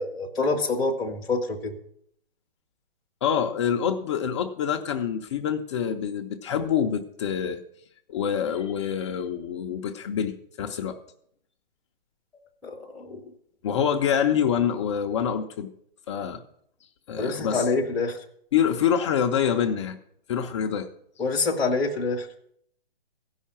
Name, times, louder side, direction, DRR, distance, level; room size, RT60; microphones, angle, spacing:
voice 1, 0.0-1.8 12.6-13.2 17.2-18.2 21.2-22.3, left 3 dB, ahead, -2 dB, 0.8 m, -26 dB
voice 2, 3.2-7.6 8.1-11.0 13.6-15.7 16.1-16.4 17.1-17.7 18.5-20.0 20.3-20.9, left 8 dB, 30° left, 3 dB, 0.5 m, -26 dB
15.5 x 5.6 x 7.3 m, 0.69 s
hypercardioid pair, 150°, 30 cm